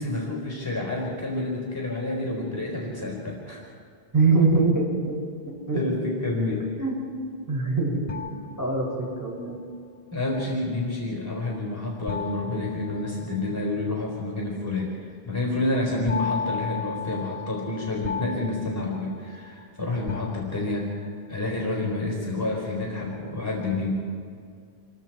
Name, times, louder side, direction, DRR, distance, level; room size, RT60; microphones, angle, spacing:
voice 1, 0.0-3.7 5.7-6.7 10.1-15.0 15.2-21.0 21.3-23.9, left 2 dB, 15° left, -2 dB, 4.1 m, -29 dB
voice 2, 4.1-5.8 6.8-7.0 7.5-8.3 8.6-8.9 9.2-9.6, right 3 dB, 15° right, -4 dB, 6.4 m, -23 dB
sound 1, 8.1-9.3 12.1-13.7 16.1-19.7 20.1-21.0, left 6 dB, 40° left, 0.6 m, -35 dB
28.0 x 23.0 x 4.6 m, 2.2 s
omnidirectional pair, 1.0 m